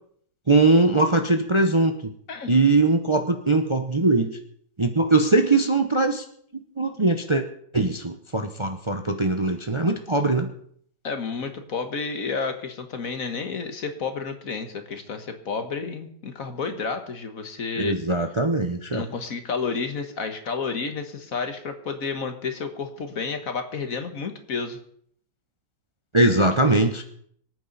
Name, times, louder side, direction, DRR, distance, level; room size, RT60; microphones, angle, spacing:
voice 1, 0.5-1.9 2.5-4.3 4.8-6.2 6.8-7.4 7.7-10.5 17.8-19.0 26.1-27.0, right 2 dB, 45° right, 6 dB, 0.3 m, -21 dB
voice 2, 11.0-18.0 18.9-24.8, left 5 dB, 50° left, 7 dB, 1.7 m, -31 dB
25.0 x 9.2 x 4.1 m, 0.64 s
omnidirectional pair, 2.0 m